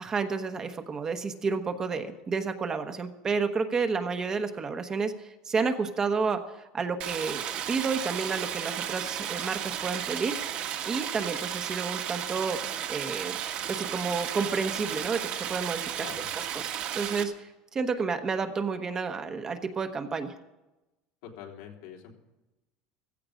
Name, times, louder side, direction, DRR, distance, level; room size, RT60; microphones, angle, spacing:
voice 1, 0.0-6.4 6.7-7.4 7.7-10.4 10.8-12.6 12.9-13.4 13.7-16.0 16.4-20.3, right 5 dB, 20° right, 7 dB, 1.1 m, -30 dB
Stream, 7.0-17.2, right 10 dB, 50° right, 1.7 m, -34 dB
voice 2, 16.0-16.3 21.2-22.1, left 9 dB, 80° left, 1 dB, 3.4 m, -44 dB
15.5 x 15.5 x 5.1 m, 1.0 s
cardioid pair, 155°, 3 cm